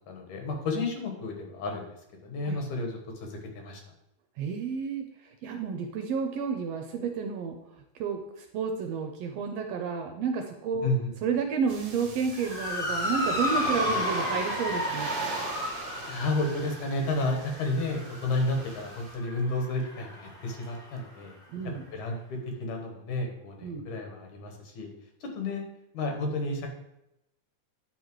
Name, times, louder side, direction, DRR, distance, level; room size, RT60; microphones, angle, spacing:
voice 1, 0.1-1.9 2.2-3.8 10.8-11.1 16.1-21.3 21.6-24.9 25.2-25.6 25.9-26.7, left 2 dB, 75° left, 2 dB, 2.7 m, -31 dB
voice 2, 4.4-7.6 8.0-10.9 11.2-15.1 21.5-21.8 23.6-23.9, right 5 dB, 75° right, 4 dB, 1.6 m, -31 dB
sound 1, 11.7-19.2, right 3 dB, 55° right, 1.4 m, -40 dB
Motor vehicle (road) / Siren, 12.3-20.9, left 1 dB, ahead, 0.9 m, -33 dB
10.0 x 4.1 x 4.6 m, 0.86 s
omnidirectional pair, 3.4 m